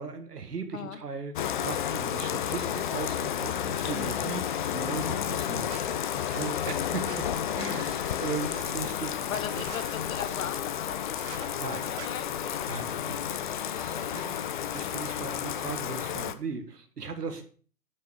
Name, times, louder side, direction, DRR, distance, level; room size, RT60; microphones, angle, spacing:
voice 1, 0.0-1.4 1.6-4.4 4.7-9.3 11.6-11.9 12.7-13.3 14.1-17.4, right 5 dB, 85° right, 7 dB, 1.8 m, -38 dB
Bathtub (filling or washing), 1.4-16.3, left 9 dB, 35° left, 0.5 m, -31 dB
sound 1, 3.7-5.1 5.7-7.2 7.7-8.9 9.3-10.0 11.1-11.5 12.0-12.1, right 9 dB, 45° right, 1.0 m, -48 dB
voice 2, 3.9-4.3 9.3-12.7 13.1-14.2 15.1-15.4, left 8 dB, 60° left, 12 dB, 1.2 m, -40 dB
sound 2, 12.9-15.7, left 3 dB, 90° left, 4.9 m, -55 dB
9.4 x 5.8 x 5.0 m, 0.42 s
figure-of-eight pair, 130°, 47 cm